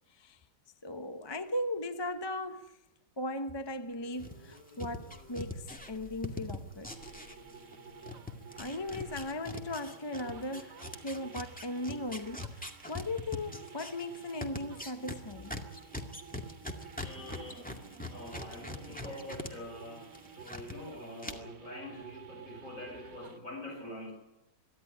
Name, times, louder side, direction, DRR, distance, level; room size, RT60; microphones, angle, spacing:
voice 1, 0.8-2.8 3.2-7.1 8.6-15.5, left 1 dB, 20° left, 0.7 m, -38 dB
sound 1, 3.9-10.0, left 1 dB, 70° left, 3.3 m, -57 dB
sound 2, 4.2-7.8 8.0-19.5 19.8-20.7 21.2-21.3, left 2 dB, 5° left, 2.0 m, -42 dB
sound 3, 6.9-23.4, right 6 dB, 65° right, 2.1 m, -51 dB
voice 2, 17.0-17.8 18.1-24.1, left 1 dB, 45° left, 8.2 m, -45 dB
23.5 x 14.0 x 9.8 m
omnidirectional pair, 1.9 m